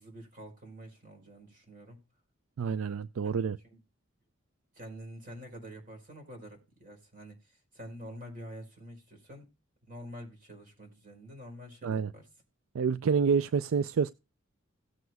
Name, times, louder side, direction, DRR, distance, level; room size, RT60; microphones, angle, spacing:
voice 1, 0.0-2.0 3.2-3.3 3.7-3.8 4.7-7.4 7.7-9.5 9.9-12.3, equal, 45° right, 4.8 m, -47 dB
voice 2, 2.6-3.6 11.8-12.1 12.7-14.1, right 6 dB, 80° right, 0.4 m, -28 dB
17.5 x 7.8 x 2.3 m
head